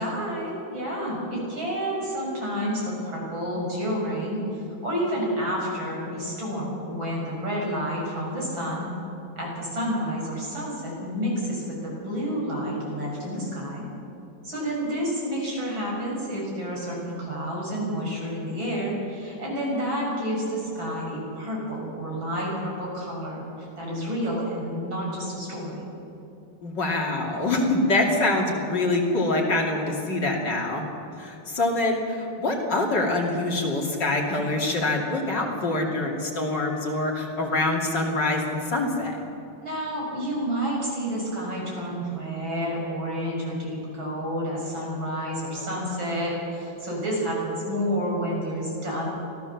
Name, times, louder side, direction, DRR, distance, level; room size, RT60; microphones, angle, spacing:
voice 1, 0.0-8.9 9.4-13.8 14.4-25.8 39.6-49.1, equal, 70° right, -3 dB, 7.3 m, -29 dB
voice 2, 26.6-30.8 31.2-39.2, left 2 dB, 55° left, 0 dB, 3.3 m, -25 dB
25.0 x 16.5 x 7.2 m, 2.9 s
omnidirectional pair, 2.2 m